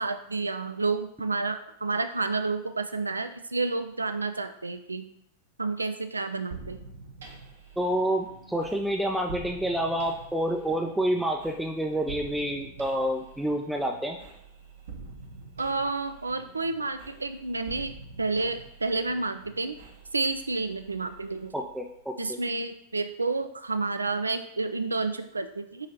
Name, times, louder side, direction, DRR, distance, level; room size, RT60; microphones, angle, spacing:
voice 1, 0.0-5.1 5.6-6.8 15.6-19.8 20.1-21.5 22.2-25.9, right 3 dB, 80° right, 9 dB, 0.3 m, -30 dB
sound 1, 6.5-22.1, right 4 dB, 65° right, 0.8 m, -47 dB
voice 2, 7.8-14.2 21.5-22.4, right 1 dB, 5° right, 2 dB, 0.4 m, -28 dB
6.5 x 2.9 x 2.8 m, 0.74 s
figure-of-eight pair, 90°, 0 cm